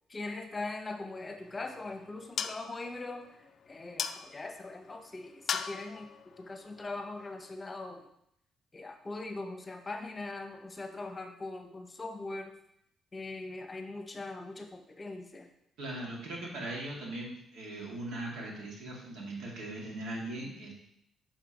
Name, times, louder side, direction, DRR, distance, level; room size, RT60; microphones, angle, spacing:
voice 1, 0.1-3.2 3.7-6.1 6.4-8.0 8.7-12.5 13.1-15.5, left 2 dB, 30° left, 6 dB, 0.9 m, -41 dB
sound 1, 1.2-7.6, left 7 dB, 60° left, 0.3 m, -41 dB
voice 2, 15.8-20.7, right 1 dB, 80° right, -3 dB, 2.2 m, -39 dB
7.4 x 5.6 x 3.0 m, 0.75 s
cardioid pair, 90°, 0 cm